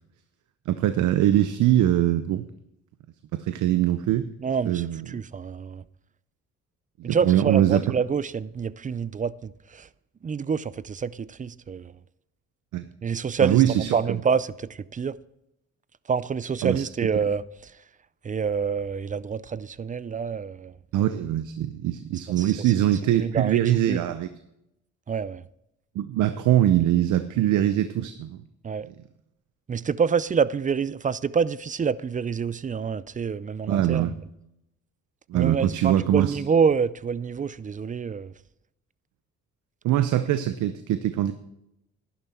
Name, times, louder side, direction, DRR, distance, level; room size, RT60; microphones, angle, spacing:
voice 1, 0.7-2.4 3.3-4.3 4.6-5.2 7.0-7.8 12.7-12.8 13.4-14.0 16.6-16.8 20.9-24.3 25.9-28.4 33.7-34.1 35.3-36.4 39.8-41.3, right 12 dB, 80° right, 0.8 m, -22 dB
voice 2, 4.4-5.8 7.0-9.9 10.2-11.9 13.0-13.6 13.9-15.1 16.1-17.4 18.2-20.7 22.4-22.5 23.2-24.0 25.1-25.4 28.6-28.9 29.7-34.0 35.3-38.3, right 6 dB, 25° right, 0.5 m, -27 dB
11.5 x 11.0 x 4.4 m
cardioid pair, 90°, 30 cm